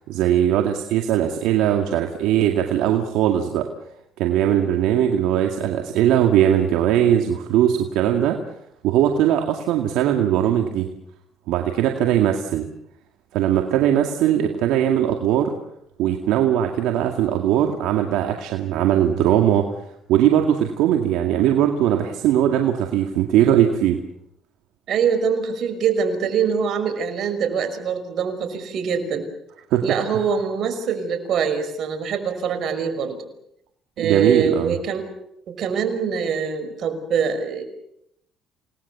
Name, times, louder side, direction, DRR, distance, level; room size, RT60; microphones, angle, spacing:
voice 1, 0.1-3.7 4.2-8.4 8.8-10.9 11.5-12.7 13.3-15.6 16.0-19.8 20.1-24.0 29.7-29.8 34.0-34.8, right 10 dB, 85° right, 4 dB, 2.1 m, -20 dB
voice 2, 24.9-29.3 29.8-33.2 34.0-35.0 35.5-37.6, right 6 dB, 65° right, 8 dB, 5.5 m, -24 dB
29.0 x 19.5 x 7.0 m, 0.76 s
cardioid pair, 85°, 0 cm